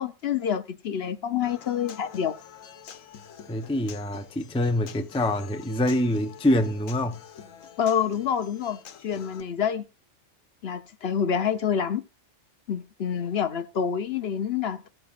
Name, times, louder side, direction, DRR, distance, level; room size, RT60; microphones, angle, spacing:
voice 1, 0.0-2.3 7.8-9.8 10.6-12.0 12.7-14.9, left 8 dB, 60° left, 0.9 m, -27 dB
Human voice / Acoustic guitar, 1.4-9.4, left 8 dB, 85° left, 1.3 m, -47 dB
voice 2, 3.5-7.2, left 1 dB, 5° left, 0.5 m, -25 dB
16.0 x 8.9 x 2.4 m
omnidirectional pair, 1.3 m